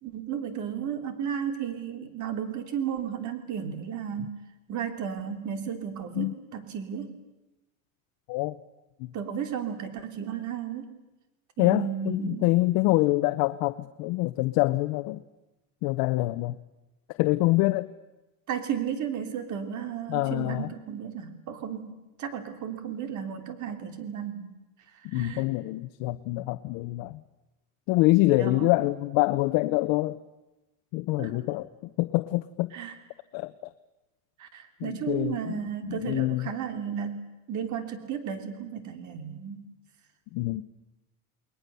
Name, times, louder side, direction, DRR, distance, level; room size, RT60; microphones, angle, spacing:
voice 1, 0.0-4.4 4.7-7.2 9.1-10.9 11.6-12.5 18.5-24.6 24.9-25.5 28.3-28.7 31.2-31.3 32.7-32.9 34.4-39.7, right 8 dB, 45° right, 8 dB, 3.1 m, -34 dB
voice 2, 11.6-15.2 15.8-16.6 17.2-17.9 20.1-20.7 25.0-27.2 27.9-30.2 30.9-31.7 32.0-32.7 33.3-33.7 34.8-36.5 40.3-40.6, left 19 dB, 55° left, 10 dB, 0.9 m, -25 dB
29.5 x 21.0 x 6.9 m, 1.0 s
supercardioid pair, 130°, 42 cm